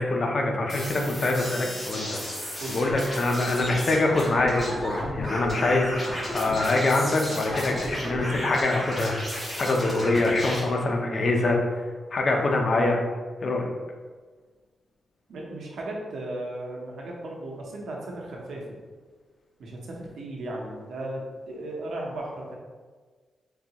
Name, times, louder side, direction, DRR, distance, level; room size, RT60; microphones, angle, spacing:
voice 1, 0.0-2.2 2.7-9.2 9.6-13.0 13.4-13.7, left 2 dB, 45° left, 1 dB, 0.6 m, -24 dB
sound 1, 0.7-10.6, equal, 15° left, 1.3 m, -33 dB
voice 2, 15.3-18.8 19.6-22.5, right 1 dB, 85° right, -2 dB, 0.8 m, -36 dB
3.8 x 3.6 x 2.9 m, 1.4 s
wide cardioid pair, 140°, 0 cm